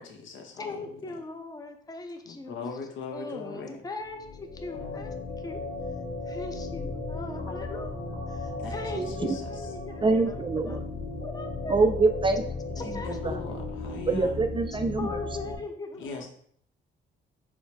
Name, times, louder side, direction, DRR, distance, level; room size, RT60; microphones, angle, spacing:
voice 1, 0.0-0.8 2.3-3.8 4.7-5.0 8.6-8.8 9.2-9.4 12.8-14.4 16.0-16.3, left 5 dB, 75° left, 3 dB, 0.9 m, -40 dB
voice 2, 0.6-2.8 3.1-5.1 5.4-5.6 6.3-10.4 10.7-10.8 11.2-11.8 12.4-12.5 12.8-13.6 14.7-16.3, left 3 dB, 20° left, 5 dB, 0.6 m, -40 dB
sound 1, 4.0-15.6, left 3 dB, 35° left, 1.2 m, -36 dB
voice 3, 9.0-9.4 10.0-10.8 11.7-12.4 14.1-15.1, right 3 dB, 25° right, 8 dB, 0.3 m, -24 dB
4.6 x 2.0 x 4.5 m, 0.62 s
cardioid pair, 90°, 20 cm